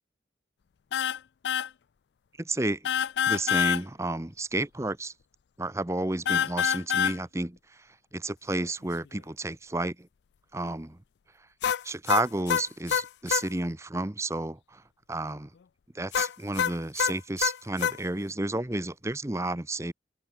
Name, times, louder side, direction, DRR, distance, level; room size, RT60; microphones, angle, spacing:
sound 1, 0.9-1.2 1.4-1.7 2.8-3.8 6.3-7.2 11.6-13.5 16.1-18.0, left 8 dB, 80° left, 0.4 m, -26 dB
voice 1, 2.4-2.9 3.3-5.1 5.6-7.6 8.1-10.1 10.5-11.0 11.8-14.8 15.1-15.5 15.9-19.9, right 2 dB, 15° right, 0.8 m, -31 dB
head